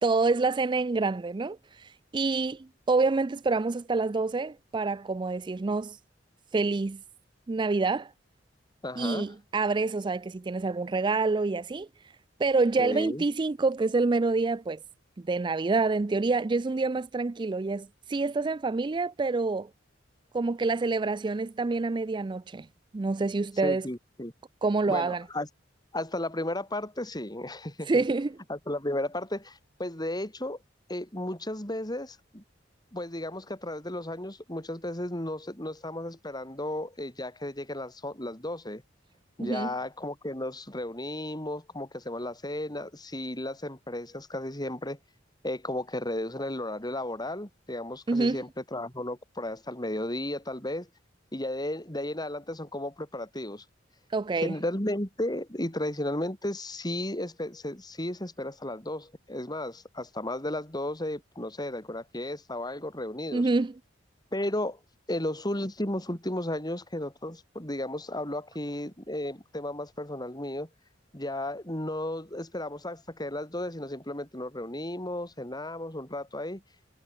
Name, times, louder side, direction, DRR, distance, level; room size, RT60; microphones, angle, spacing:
voice 1, 0.0-6.0 6.5-7.0 7.5-8.1 9.0-11.9 12.4-14.8 15.2-19.7 20.3-22.7 22.9-23.9 24.6-25.2 27.9-28.3 39.4-39.7 48.1-48.4 54.1-54.5 63.3-63.7, right 3 dB, 25° right, 0.4 m, -27 dB
voice 2, 8.8-9.3 12.8-13.2 23.6-24.3 24.9-25.5 25.9-28.0 28.5-30.6 30.9-32.4 32.9-38.8 39.4-45.0 45.4-50.9 51.3-53.6 54.4-63.5 64.3-64.8 65.1-70.7 71.1-76.6, left 1 dB, 20° left, 5.9 m, -34 dB
head